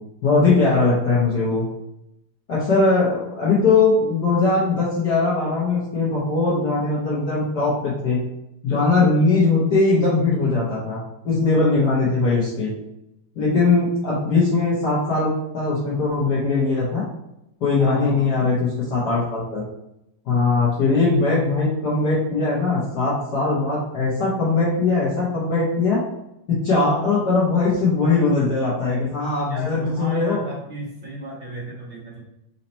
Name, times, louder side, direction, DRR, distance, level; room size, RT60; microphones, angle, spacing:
voice 1, 0.2-1.7 2.5-8.2 8.6-11.0 11.2-12.7 13.3-17.0 17.6-19.6 20.2-26.0 26.5-30.4, left 3 dB, 55° left, -8 dB, 1.5 m, -20 dB
voice 2, 17.8-18.3 29.5-32.2, right 1 dB, 45° right, -4 dB, 0.6 m, -34 dB
4.1 x 2.9 x 4.2 m, 0.85 s
omnidirectional pair, 2.3 m